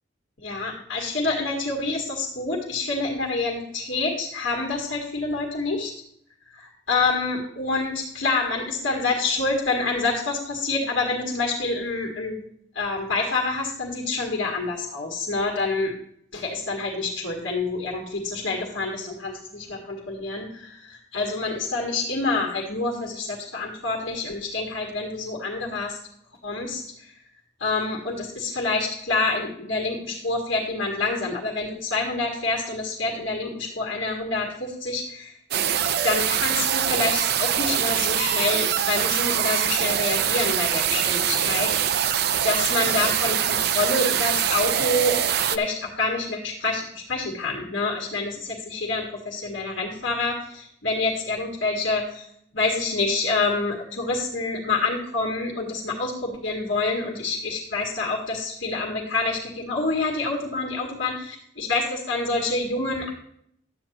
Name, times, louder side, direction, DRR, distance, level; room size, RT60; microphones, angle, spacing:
voice 1, 0.4-5.9 6.5-12.4 12.8-15.9 16.3-26.0 26.4-27.2 27.6-35.3 36.0-41.7 42.4-52.3 52.5-63.1, left 3 dB, 70° left, -1 dB, 1.9 m, -27 dB
sound 1, 35.5-45.6, right 9 dB, 55° right, 0.4 m, -23 dB
12.0 x 8.8 x 2.9 m, 0.69 s
head